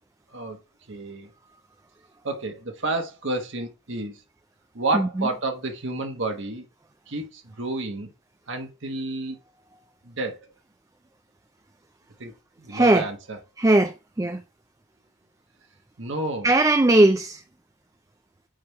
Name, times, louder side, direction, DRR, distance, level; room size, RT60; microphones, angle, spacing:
voice 1, 0.9-1.3 2.2-4.2 4.7-6.6 7.1-8.1 8.5-9.4 10.1-10.5 12.2-12.3 12.6-13.4 16.0-16.5, right 2 dB, 60° right, 1.2 m, -30 dB
voice 2, 4.9-5.3 12.7-13.0 13.6-14.4 16.4-17.4, right 2 dB, 15° right, 0.3 m, -19 dB
8.8 x 3.4 x 4.5 m
head